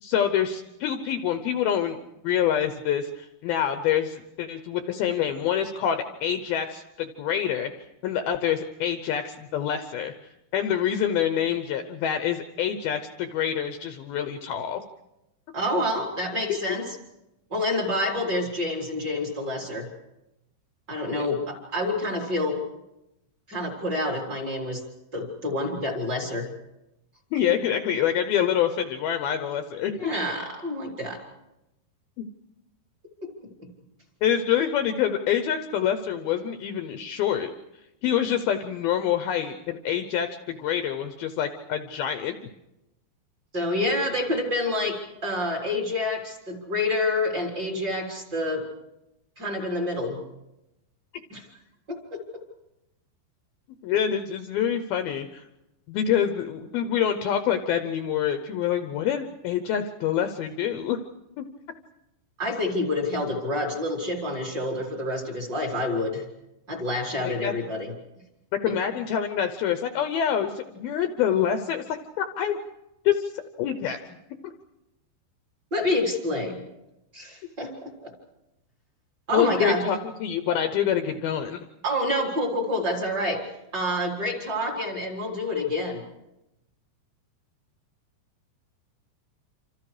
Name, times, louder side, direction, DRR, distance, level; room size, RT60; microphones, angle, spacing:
voice 1, 0.0-2.0 2.2-7.7 8.0-10.1 10.5-14.8 21.1-21.3 27.3-30.1 32.2-32.3 34.2-37.5 38.0-42.3 53.8-55.4 55.9-61.0 61.4-61.5 67.2-67.5 68.6-72.6 73.1-73.3 73.6-74.0 74.4-74.5 79.3-81.7, left 9 dB, 75° left, 8 dB, 2.5 m, -26 dB
voice 2, 15.5-17.0 17.5-19.9 20.9-22.6 23.5-24.8 25.1-26.5 29.9-31.2 43.5-48.6 49.4-50.2 51.3-51.4 51.9-52.2 62.4-66.2 66.7-67.9 68.7-68.8 75.7-76.6 77.1-78.1 79.3-79.8 81.8-83.5 83.7-86.0, left 1 dB, 25° right, 0 dB, 3.9 m, -28 dB
27.5 x 27.0 x 5.0 m, 0.91 s
omnidirectional pair, 5.0 m